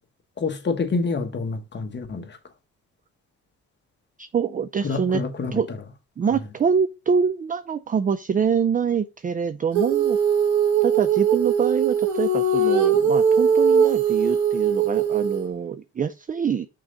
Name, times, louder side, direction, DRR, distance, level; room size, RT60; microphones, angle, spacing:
voice 1, 0.4-2.4 4.8-5.6, left 4 dB, 35° left, 1.3 m, -27 dB
voice 2, 4.2-5.2 5.5-5.7 6.2-10.2 10.8-16.7, right 6 dB, 30° right, 0.4 m, -25 dB
Female singing, 9.7-15.5, right 6 dB, 75° right, 1.6 m, -20 dB
6.1 x 3.8 x 5.4 m
cardioid pair, 90°, 30 cm